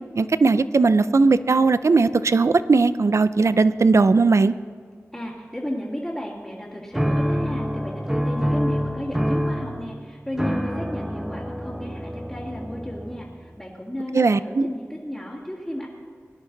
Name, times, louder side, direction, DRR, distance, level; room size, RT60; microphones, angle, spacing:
voice 1, 0.2-4.5 14.1-14.7, right 4 dB, 65° right, 14 dB, 0.5 m, -18 dB
voice 2, 5.1-15.9, equal, 10° left, -6 dB, 2.2 m, -33 dB
sound 1, 6.9-13.4, equal, 10° right, 1.0 m, -26 dB
18.5 x 11.0 x 3.9 m, 2.1 s
wide cardioid pair, 60°, 5 cm